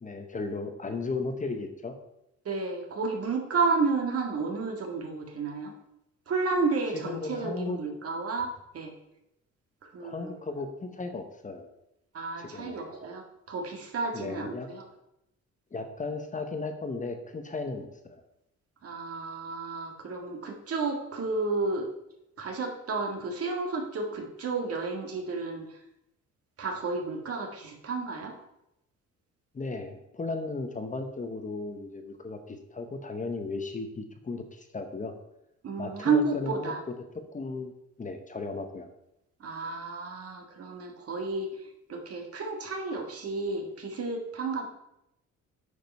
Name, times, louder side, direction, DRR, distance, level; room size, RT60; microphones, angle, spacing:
voice 1, 0.0-2.0 6.9-7.8 10.0-11.7 12.4-12.8 14.1-14.7 15.7-18.2 29.5-35.1 35.8-36.7 37.3-37.7 38.0-38.9, left 3 dB, 25° left, 6 dB, 0.9 m, -35 dB
voice 2, 2.5-5.7 6.3-8.9 9.8-10.4 12.1-14.8 18.8-21.9 22.4-25.8 26.6-28.3 35.6-36.8 39.4-44.7, right 4 dB, 50° right, 3 dB, 1.8 m, -31 dB
9.3 x 5.1 x 5.4 m, 0.84 s
cardioid pair, 120°, 30 cm